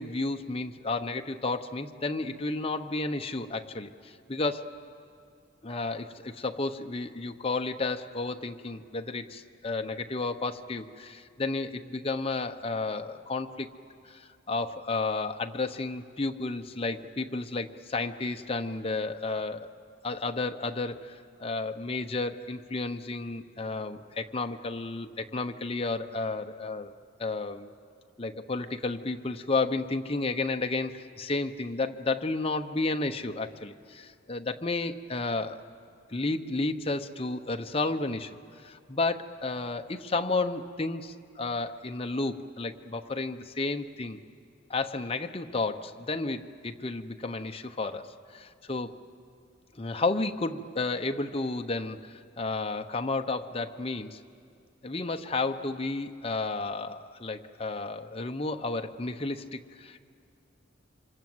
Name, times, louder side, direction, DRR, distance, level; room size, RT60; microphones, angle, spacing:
voice 1, 0.0-4.8 5.6-13.7 14.0-19.7 20.0-26.9 27.2-27.7 28.2-35.6 36.1-44.2 44.7-48.9 49.7-54.2 54.8-60.0, left 3 dB, 30° left, 6 dB, 0.9 m, -32 dB
28.5 x 26.0 x 7.9 m, 2.4 s
head